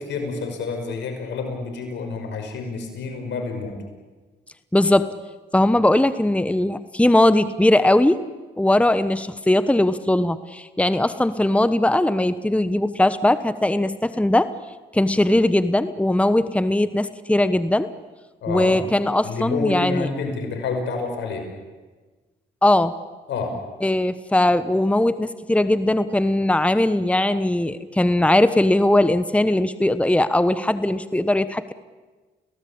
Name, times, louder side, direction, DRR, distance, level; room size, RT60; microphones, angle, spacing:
voice 1, 0.0-3.8 18.4-18.8 19.2-21.5 23.3-23.6, left 4 dB, 80° left, 4 dB, 5.8 m, -28 dB
voice 2, 4.7-5.1 5.5-8.2 8.6-14.5 14.9-17.9 18.5-20.1 22.6-22.9 23.8-31.7, left 1 dB, 5° left, 13 dB, 1.2 m, -19 dB
29.5 x 18.0 x 8.8 m, 1.3 s
supercardioid pair, 60°, 18 cm